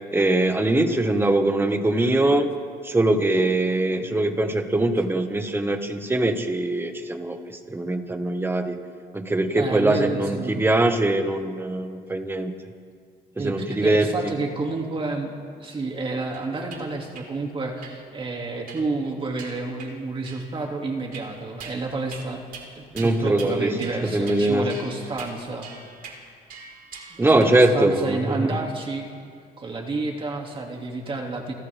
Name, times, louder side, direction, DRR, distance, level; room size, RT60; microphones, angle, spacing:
voice 1, 0.1-2.5 2.8-8.8 9.1-12.5 13.4-14.1 22.9-23.7 24.0-24.7 27.2-28.5, right 2 dB, 15° right, 6 dB, 1.8 m, -22 dB
voice 2, 9.6-10.7 13.4-22.4 22.8-25.7 27.1-29.1 29.6-31.5, right 3 dB, 30° right, 1 dB, 2.7 m, -30 dB
sound 1, 16.3-16.8 17.1-17.3 17.8-18.0 18.7-19.0 19.4-19.9 20.3-20.7 21.1-21.8 22.1-22.3 22.5-22.7 22.9-23.5 23.8-24.4 24.7-27.7, right 5 dB, 60° right, 4.6 m, -42 dB
29.5 x 25.0 x 3.7 m, 2.1 s
cardioid pair, 110°, 17 cm